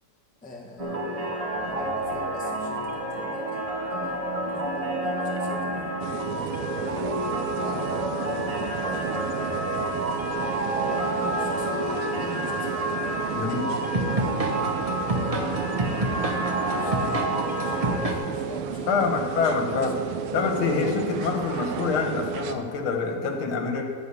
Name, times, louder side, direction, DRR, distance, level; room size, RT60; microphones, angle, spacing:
voice 1, 0.4-3.6 3.9-4.2 4.5-7.1 7.6-8.2 8.9-9.4 10.8-14.5 15.2-16.3 16.7-19.0 19.4-19.9 23.2-23.4, left 2 dB, 10° left, -1 dB, 0.5 m, -43 dB
sound 1, 0.8-18.2, right 1 dB, 55° right, 0.4 m, -28 dB
sound 2, 6.0-22.6, right 8 dB, 85° right, 1.6 m, -33 dB
voice 2, 13.3-13.7 18.9-19.9 20.3-23.8, left 5 dB, 75° left, 3 dB, 2.0 m, -26 dB
13.5 x 5.1 x 8.4 m, 2.2 s
omnidirectional pair, 2.4 m